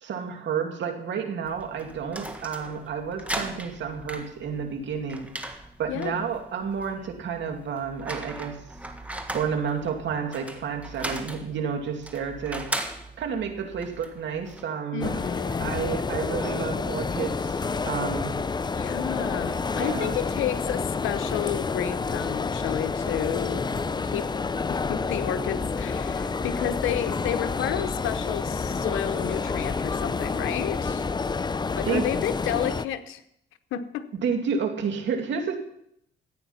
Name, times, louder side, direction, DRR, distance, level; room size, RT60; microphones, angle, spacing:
voice 1, 0.0-5.5 5.8-8.6 9.3-12.7 13.2-15.1 15.6-18.3 19.7-20.2 31.8-32.0 34.2-35.6, right 6 dB, 65° right, 4 dB, 2.4 m, -30 dB
sound 1, 1.4-14.7, right 1 dB, 5° right, 1.5 m, -38 dB
voice 2, 5.9-6.2 14.9-15.9 18.7-23.7 24.0-24.3 24.7-31.1 31.8-33.2 33.7-34.1, left 10 dB, 90° left, 11 dB, 1.0 m, -31 dB
sound 2, 15.0-32.9, left 4 dB, 20° left, 0.5 m, -29 dB
14.0 x 9.1 x 5.7 m, 0.75 s
cardioid pair, 90°, 20 cm